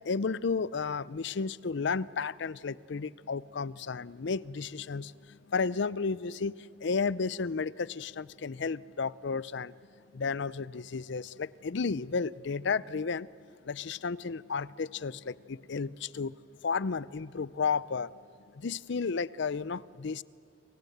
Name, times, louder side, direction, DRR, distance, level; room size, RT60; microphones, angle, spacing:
voice 1, 0.0-9.7 10.1-13.3 13.6-16.3 16.6-18.1 18.5-20.2, left 5 dB, 65° left, 19 dB, 0.6 m, -33 dB
29.5 x 25.5 x 8.0 m, 2.7 s
head